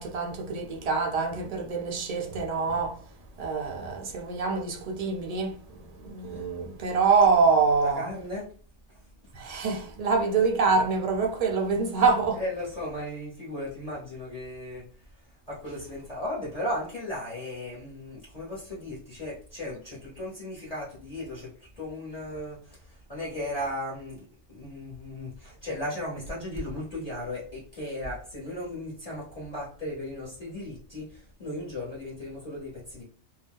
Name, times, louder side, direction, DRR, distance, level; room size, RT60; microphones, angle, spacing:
voice 1, 0.0-3.0 3.4-5.5 6.0-8.1 9.3-12.4, right 4 dB, 45° right, 0.5 m, -25 dB
voice 2, 7.8-8.5 12.3-14.8 15.5-21.5 21.8-22.8 23.1-33.0, left 1 dB, 30° left, 1.1 m, -36 dB
2.7 x 2.2 x 3.5 m
omnidirectional pair, 1.4 m